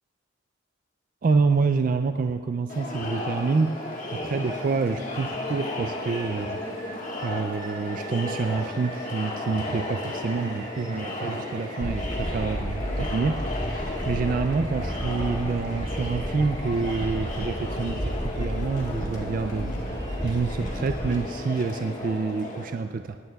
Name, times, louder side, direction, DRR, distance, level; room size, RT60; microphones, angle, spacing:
voice 1, 1.2-3.8 4.1-7.0 7.2-23.2, right 4 dB, 45° right, 8 dB, 0.3 m, -27 dB
Crowd, 2.7-22.6, left 2 dB, 40° left, 1.5 m, -34 dB
Rain, 2.9-22.3, right 4 dB, 85° right, 2.9 m, -49 dB
sound 1, 11.8-21.2, equal, 5° left, 2.2 m, -32 dB
19.5 x 15.0 x 2.3 m, 2.4 s
head